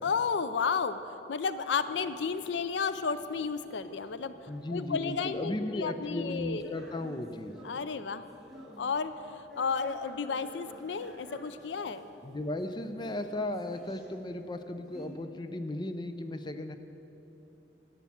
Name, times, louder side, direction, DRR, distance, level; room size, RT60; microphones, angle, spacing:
voice 1, 0.0-4.3 4.7-6.8 7.6-8.2 8.8-12.0, left 5 dB, 80° left, 12 dB, 0.5 m, -32 dB
sound 1, 1.7-15.1, equal, ahead, 2.1 m, -53 dB
voice 2, 4.5-7.5 12.2-16.7, left 1 dB, 25° left, 8 dB, 0.5 m, -36 dB
12.0 x 8.2 x 7.2 m, 3.0 s
head